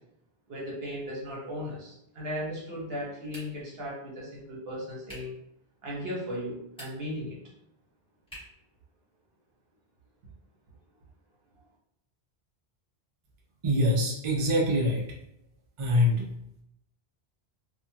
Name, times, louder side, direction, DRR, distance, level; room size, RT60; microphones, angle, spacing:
voice 1, 0.5-5.3 5.8-7.4, equal, 65° right, -4 dB, 1.1 m, -36 dB
sound 1, 3.3-3.8 5.0-5.4 6.6-7.2 8.3-8.7, equal, 5° left, 1.3 m, -47 dB
voice 2, 13.6-15.0 15.8-16.3, left 1 dB, 40° right, -2 dB, 0.5 m, -24 dB
2.6 x 2.4 x 2.7 m, 0.78 s
omnidirectional pair, 1.1 m